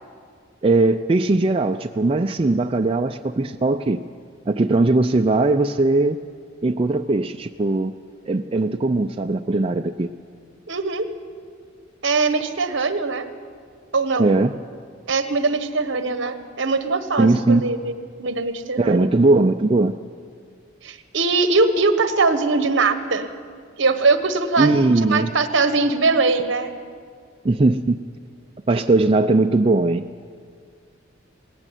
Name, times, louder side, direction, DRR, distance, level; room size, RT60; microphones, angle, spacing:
voice 1, 0.6-4.0 4.5-6.2 6.6-7.9 8.3-10.1 14.2-14.5 17.2-17.7 18.8-19.9 24.6-25.3 27.4-28.0 28.7-30.0, right 2 dB, 25° right, 6 dB, 0.4 m, -19 dB
voice 2, 10.7-11.1 12.0-13.3 13.9-14.3 15.1-17.9 18.2-19.1 20.8-23.3 23.8-24.7 25.1-26.7, right 3 dB, 60° right, 9 dB, 1.3 m, -21 dB
18.5 x 16.0 x 9.1 m, 2.1 s
head